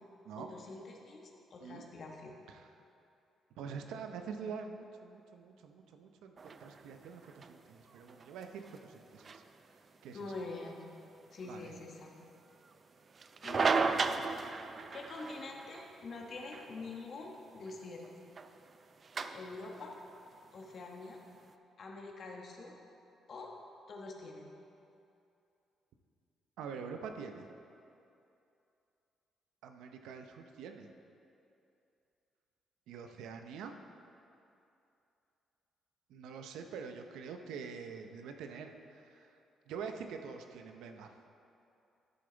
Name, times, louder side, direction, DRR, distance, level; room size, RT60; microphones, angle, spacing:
voice 1, 0.4-2.4 10.1-10.9 11.3-12.1 13.4-13.8 14.9-18.0 19.3-19.9 20.5-21.2 21.8-22.8 23.3-23.5 23.9-24.5, left 3 dB, 55° left, 1 dB, 1.3 m, -45 dB
voice 2, 3.6-9.4 10.0-10.3 11.4-11.7 26.6-27.5 29.6-30.9 32.9-33.8 36.1-39.4 39.7-41.1, right 6 dB, 90° right, 5 dB, 0.6 m, -45 dB
sound 1, 6.4-21.5, right 4 dB, 40° right, 0.4 m, -39 dB
11.5 x 6.7 x 3.9 m, 2.7 s
cardioid pair, 90°, 0 cm